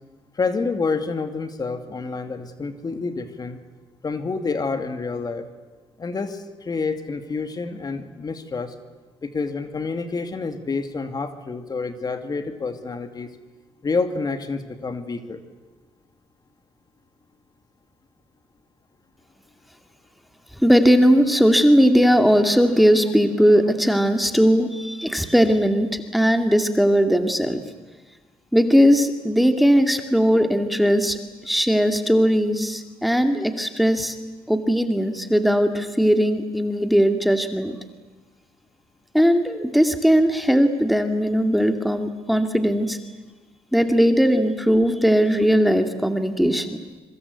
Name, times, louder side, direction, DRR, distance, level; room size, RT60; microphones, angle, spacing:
voice 1, 0.3-3.6 4.0-5.4 6.0-8.7 9.2-13.4 13.8-15.4, left 4 dB, 35° left, 8 dB, 2.6 m, -28 dB
voice 2, 20.5-27.6 28.5-31.2 31.4-34.2 34.5-37.8 39.1-43.0 43.7-46.7, equal, ahead, 6 dB, 2.3 m, -18 dB
25.5 x 23.5 x 8.4 m, 1.2 s
supercardioid pair, 75°, 11 cm